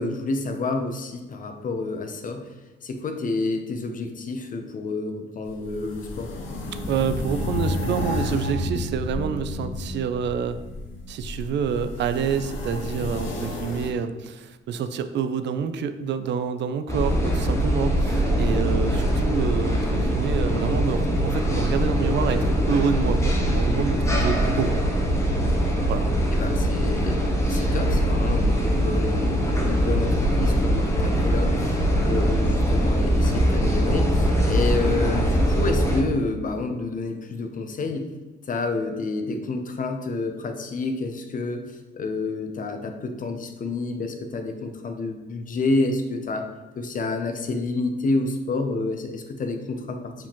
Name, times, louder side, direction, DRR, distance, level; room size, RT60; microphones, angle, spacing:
voice 1, 0.0-2.5 2.8-6.4 26.3-27.2 27.5-38.1 38.5-50.1, left 3 dB, 45° left, 6 dB, 0.6 m, -29 dB
sound 1, 5.4-13.9, left 2 dB, 85° left, 0.8 m, -31 dB
voice 2, 6.9-10.6 11.1-24.7 25.9-26.1, right 7 dB, 65° right, 10 dB, 0.4 m, -27 dB
sound 2, 16.9-36.0, equal, 15° left, 0.9 m, -22 dB
sound 3, 28.0-35.2, right 2 dB, 15° right, 0.5 m, -33 dB
4.8 x 3.6 x 3.0 m, 1.2 s
cardioid pair, 90°, 20 cm